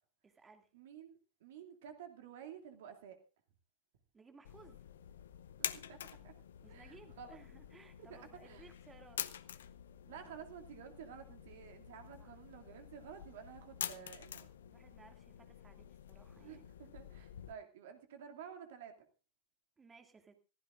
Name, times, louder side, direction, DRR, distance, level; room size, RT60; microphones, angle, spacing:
voice 1, 0.2-0.7 4.1-4.8 6.6-9.2 12.2-12.3 14.7-16.6 19.8-20.3, right 4 dB, 15° right, 5 dB, 2.4 m, -60 dB
voice 2, 0.7-3.2 5.6-6.4 6.7-7.4 8.0-8.7 10.1-14.5 16.4-19.1, right 8 dB, 55° right, 5 dB, 2.6 m, -52 dB
sound 1, 4.4-17.5, left 9 dB, 60° left, 0.7 m, -48 dB
24.5 x 15.0 x 2.6 m, 0.33 s
figure-of-eight pair, 90°, 0 cm